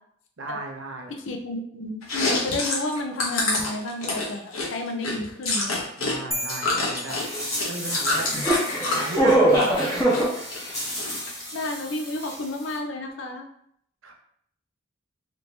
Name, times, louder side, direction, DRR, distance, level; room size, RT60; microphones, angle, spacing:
voice 1, 0.4-1.1 6.0-7.2 7.7-8.3 8.9-10.0 14.0-14.1, right 2 dB, 65° right, 2 dB, 0.7 m, -35 dB
voice 2, 1.1-5.9 8.8-9.0 11.5-13.5, left 2 dB, 65° left, 3 dB, 0.6 m, -31 dB
Chewing mastication, 2.0-6.1 6.4-9.1 9.5-10.2 10.5-11.4, left 2 dB, 90° left, 0.9 m, -27 dB
sound 1, 6.3-8.0, equal, ahead, 0.3 m, -35 dB
sound 2, 7.2-12.0 12.2-12.3, right 1 dB, 15° left, 0.9 m, -24 dB
3.1 x 2.7 x 3.2 m, 0.68 s
head